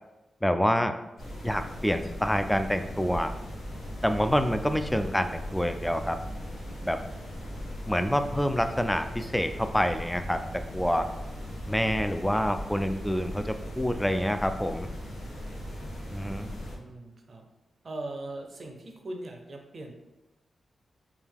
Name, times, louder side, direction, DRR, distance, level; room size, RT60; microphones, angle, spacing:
voice 1, 0.4-1.0 1.4-3.3 4.0-6.2 6.8-7.0 7.8-11.1 11.7-14.9 16.1-16.5, equal, 10° left, 8 dB, 0.3 m, -27 dB
sound 1, 1.2-16.8, equal, 90° left, 0.6 m, -38 dB
voice 2, 16.2-17.5 17.8-19.9, right 2 dB, 60° right, 3 dB, 0.6 m, -40 dB
3.6 x 2.3 x 3.4 m, 1.0 s
supercardioid pair, 45°, 0 cm